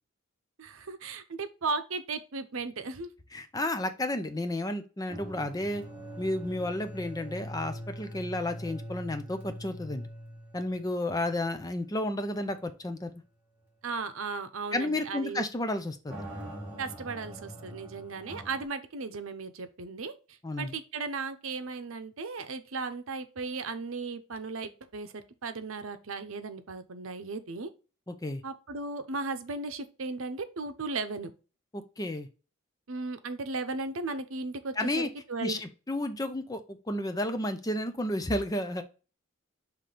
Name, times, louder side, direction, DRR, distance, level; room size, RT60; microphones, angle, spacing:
voice 1, 0.6-3.1 13.8-15.4 16.8-27.7 28.4-31.3 32.9-35.6, right 4 dB, 80° right, 10 dB, 0.8 m, -36 dB
voice 2, 3.3-5.8 6.2-10.1 10.5-13.1 14.7-16.1 20.4-20.7 28.1-28.4 31.7-32.3 34.8-35.1 35.4-36.6 36.9-38.8, left 1 dB, 15° left, 8 dB, 0.6 m, -32 dB
sound 1, 5.1-11.6 11.9-12.0 12.6-12.7 16.1-18.6, equal, 10° right, 2.4 m, -43 dB
5.9 x 3.2 x 5.0 m, 0.34 s
head